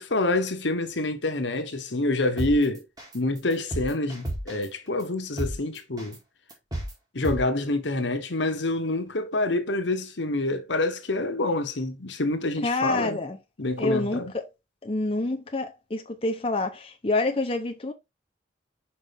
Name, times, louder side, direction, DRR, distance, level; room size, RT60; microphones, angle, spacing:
voice 1, 0.0-2.9 3.1-6.2 7.1-13.2 13.6-14.3, left 2 dB, 75° left, 1.2 m, -27 dB
sound 1, 2.4-2.5 3.0-3.1 3.5-4.6 5.0-5.1 5.4-5.5 6.0-6.1 6.5-6.9 7.2-7.4, right 1 dB, 20° right, 2.1 m, -30 dB
voice 2, 12.6-13.4 13.8-14.4 14.8-17.9, left 2 dB, 30° left, 0.8 m, -27 dB
5.4 x 5.2 x 3.5 m
head